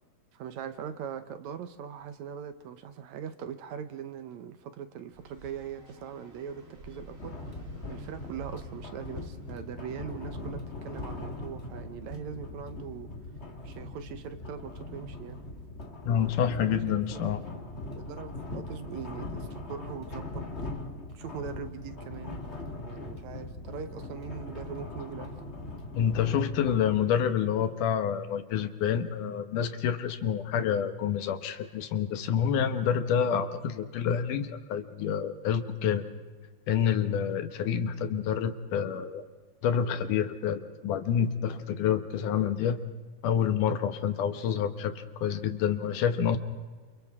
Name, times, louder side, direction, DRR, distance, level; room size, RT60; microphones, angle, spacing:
voice 1, 0.3-13.1 13.6-15.5 16.6-20.5 21.1-22.4 22.8-25.4, right 8 dB, 70° right, 9 dB, 2.1 m, -41 dB
sound 1, 5.1-10.0, right 1 dB, 25° right, 2.7 m, -50 dB
sound 2, 7.2-27.1, left 2 dB, 30° left, 1.3 m, -40 dB
voice 2, 16.1-17.4 25.9-36.0 36.7-39.2 39.6-42.8 43.2-46.4, left 8 dB, 75° left, 9 dB, 2.7 m, -28 dB
29.0 x 28.5 x 3.7 m, 1.4 s
omnidirectional pair, 3.7 m